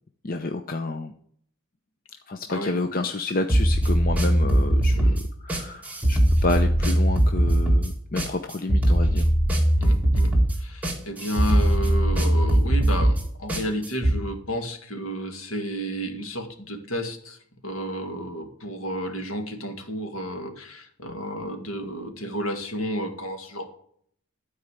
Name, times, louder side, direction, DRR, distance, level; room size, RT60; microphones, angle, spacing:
voice 1, 0.2-1.1 2.3-9.3, left 2 dB, 40° left, 7 dB, 0.7 m, -29 dB
sound 1, 3.5-14.2, right 1 dB, 5° right, 1.7 m, -20 dB
voice 2, 9.8-17.4 17.6-23.7, equal, 65° left, 5 dB, 2.1 m, -32 dB
13.0 x 4.7 x 8.4 m, 0.63 s
head